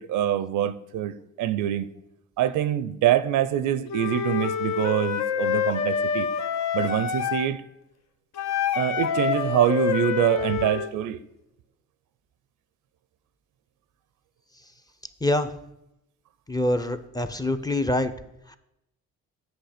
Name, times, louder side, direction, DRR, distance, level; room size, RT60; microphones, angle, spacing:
voice 1, 0.0-1.9 2.4-6.3 6.7-7.6 8.8-11.2, right 11 dB, 80° right, 0.6 m, -25 dB
Wind instrument woodwind instrument, 3.9-7.5 8.4-10.9, left 8 dB, 65° left, 0.8 m, -27 dB
voice 2, 16.5-18.1, left 1 dB, 15° left, 0.6 m, -25 dB
8.0 x 6.4 x 5.0 m
cardioid pair, 90°, 30 cm